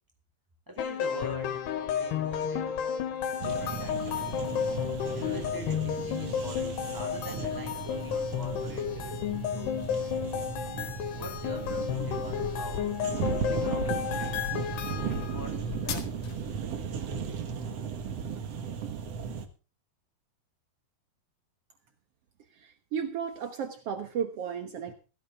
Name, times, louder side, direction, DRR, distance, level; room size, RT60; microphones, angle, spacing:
voice 1, 0.7-2.8 3.3-4.5 5.1-9.8 11.1-14.5 15.2-16.2, equal, 5° right, 4 dB, 3.9 m, -44 dB
sound 1, 0.8-15.5, left 8 dB, 85° left, 3.6 m, -32 dB
sound 2, 3.4-19.5, right 6 dB, 55° right, 2.0 m, -36 dB
sound 3, 11.7-16.6, left 9 dB, 65° left, 3.7 m, -41 dB
voice 2, 22.5-24.9, right 7 dB, 75° right, 7 dB, 1.4 m, -34 dB
16.5 x 14.5 x 3.6 m, 0.34 s
omnidirectional pair, 4.7 m